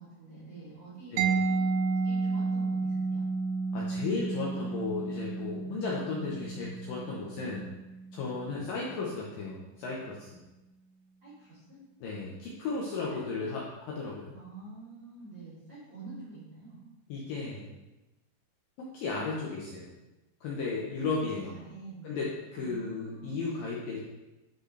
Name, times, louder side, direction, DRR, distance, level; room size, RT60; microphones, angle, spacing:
voice 1, 0.0-1.6 2.0-3.2 8.5-8.6 11.2-11.8 13.1-13.5 14.3-16.8 21.4-22.2 22.5-23.6, right 3 dB, 25° right, -9 dB, 2.9 m, -47 dB
Mallet percussion, 1.2-8.7, right 4 dB, 80° right, 2.6 m, -32 dB
voice 2, 3.7-7.7 8.1-10.4 12.0-13.6 13.9-14.3 17.1-17.7 18.9-19.9 20.4-21.5 22.0-24.0, left 4 dB, 90° left, -4 dB, 1.9 m, -35 dB
11.5 x 5.2 x 3.3 m, 1.0 s
omnidirectional pair, 5.4 m